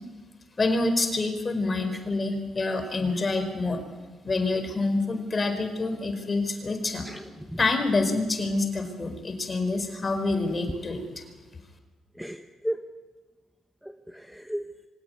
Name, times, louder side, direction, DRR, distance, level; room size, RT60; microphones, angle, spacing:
voice 1, 0.6-3.8 4.2-7.0 7.6-11.0, left 3 dB, 30° left, 7 dB, 4.8 m, -27 dB
voice 2, 7.0-7.6 12.1-12.9 13.8-14.7, equal, 5° right, 7 dB, 1.3 m, -35 dB
24.5 x 17.5 x 9.7 m, 1.3 s
cardioid pair, 90°, 0 cm